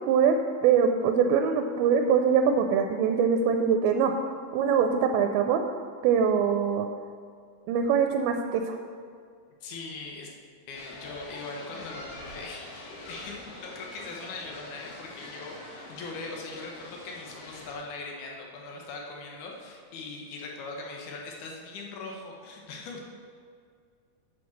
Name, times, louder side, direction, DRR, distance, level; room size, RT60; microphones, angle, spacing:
voice 1, 0.6-5.6 6.0-6.9 7.7-8.8, right 6 dB, 85° right, 5 dB, 2.8 m, -23 dB
voice 2, 9.6-10.3 10.7-23.0, left 3 dB, 65° left, -1 dB, 2.0 m, -40 dB
sound 1, 10.7-17.7, left 1 dB, 85° left, 4.5 m, -44 dB
8.7 x 7.2 x 6.4 m, 2.1 s
omnidirectional pair, 5.3 m